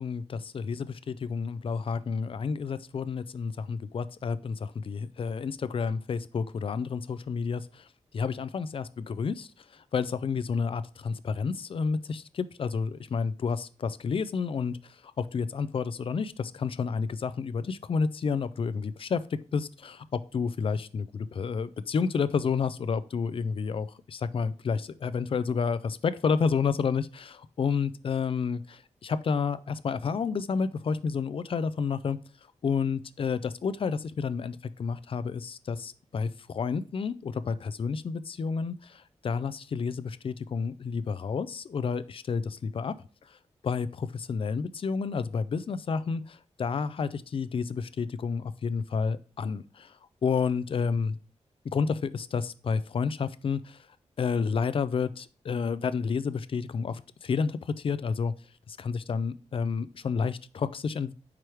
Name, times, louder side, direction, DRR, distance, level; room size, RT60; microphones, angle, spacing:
voice 1, 0.0-7.9 8.1-32.2 32.6-42.9 43.6-49.9 50.2-51.2 51.7-53.8 54.2-58.3 58.7-61.1, left 5 dB, 45° left, 0.4 m, -30 dB
4.8 x 4.7 x 4.5 m
wide cardioid pair, 165°, 12 cm